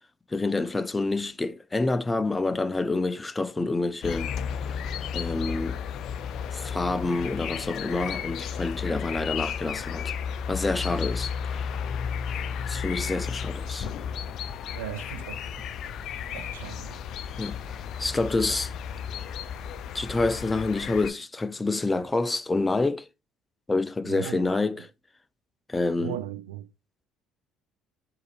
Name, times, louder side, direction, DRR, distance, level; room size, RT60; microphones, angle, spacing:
voice 1, 0.3-4.3 5.1-5.8 6.5-10.1 10.5-11.7 12.7-13.9 17.4-17.6 18.0-18.7 19.9-23.1 23.7-24.8 25.7-26.2, left 3 dB, 20° left, 0.6 m, -27 dB
sound 1, 4.0-21.1, left 7 dB, 60° left, 0.5 m, -33 dB
voice 2, 14.7-15.5 16.3-17.1 18.5-18.6 24.0-24.9 26.0-26.7, right 13 dB, 80° right, 0.4 m, -38 dB
11.0 x 3.9 x 2.5 m
hypercardioid pair, 55°, 0 cm